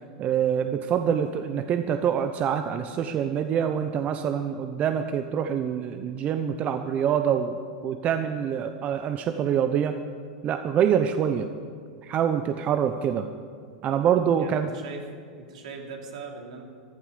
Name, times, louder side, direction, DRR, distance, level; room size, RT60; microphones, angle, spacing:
voice 1, 0.2-7.6 7.8-9.9 10.4-11.5 12.0-13.3 13.8-14.7, right 8 dB, 35° right, 8 dB, 0.8 m, -25 dB
voice 2, 14.4-15.0 15.4-16.6, right 4 dB, 75° right, 1 dB, 3.0 m, -39 dB
15.0 x 12.5 x 6.8 m, 2.2 s
hypercardioid pair, 105°, 4 cm